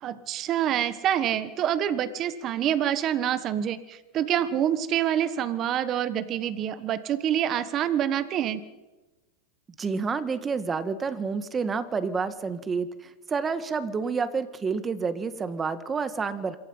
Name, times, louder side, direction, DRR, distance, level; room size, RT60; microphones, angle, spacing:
voice 1, 0.0-8.6, right 10 dB, 30° right, 13 dB, 1.3 m, -26 dB
voice 2, 9.8-16.6, right 5 dB, 15° right, 12 dB, 1.6 m, -29 dB
27.0 x 23.5 x 5.6 m, 1.2 s
supercardioid pair, 145°, 0 cm